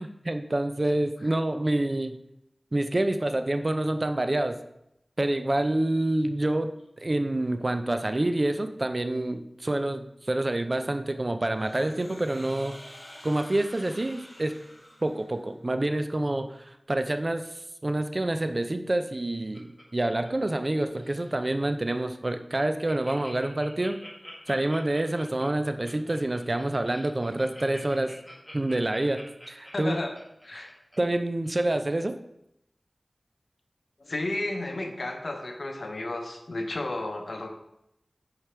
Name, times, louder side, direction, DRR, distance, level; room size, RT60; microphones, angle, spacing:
voice 1, 0.0-2.2 2.7-4.6 5.2-6.7 7.0-12.8 13.2-14.5 15.0-24.0 24.5-28.1 28.5-30.0 30.6-30.7 31.0-32.2, right 1 dB, 45° right, 8 dB, 0.5 m, -27 dB
sound 1, 11.6-15.6, equal, 40° left, 2.0 m, -48 dB
Laughter, 19.1-20.7 21.0-21.3 21.8-21.9 22.2-22.3 22.5-31.0 31.4-31.5, equal, 10° left, 1.8 m, -47 dB
voice 2, 29.7-30.2 30.4-30.7 34.0-37.5, left 2 dB, 80° left, 4 dB, 0.7 m, -33 dB
5.0 x 4.8 x 4.3 m, 0.81 s
wide cardioid pair, 65°, 0 cm